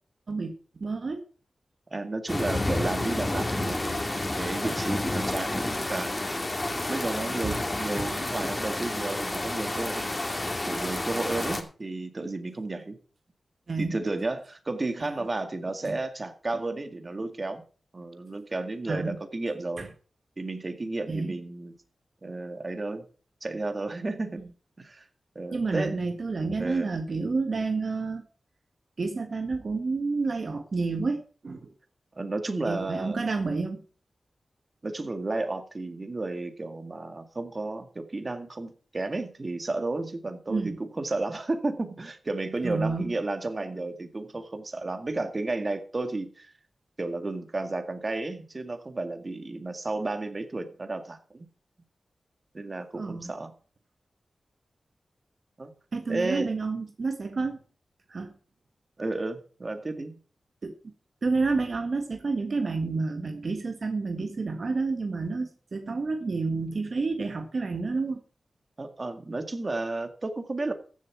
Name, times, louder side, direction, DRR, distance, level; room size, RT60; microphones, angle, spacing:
voice 1, 0.3-1.2 7.4-7.5 13.7-14.0 15.0-15.1 15.8-16.0 18.9-19.2 19.8-19.9 21.1-21.4 25.5-28.2 29.0-31.7 32.6-33.8 40.5-40.8 42.6-43.1 53.0-53.3 55.9-57.6 58.1-58.3 60.6-60.7 61.2-68.2, right 3 dB, 60° right, 6 dB, 1.6 m, -29 dB
voice 2, 1.9-6.4 6.8-10.2 10.7-13.0 13.8-17.6 17.9-19.9 20.4-21.7 22.2-23.1 23.4-24.4 24.8-25.1 25.4-25.9 26.6-26.9 32.2-33.2 34.8-46.5 47.0-51.5 52.5-53.5 55.6-55.7 56.1-56.5 59.0-60.2 68.8-70.7, right 2 dB, 40° right, 8 dB, 2.0 m, -32 dB
sound 1, 2.3-11.6, left 2 dB, 25° left, 2.4 m, -30 dB
15.0 x 7.4 x 4.7 m, 0.39 s
cardioid pair, 60°, 0 cm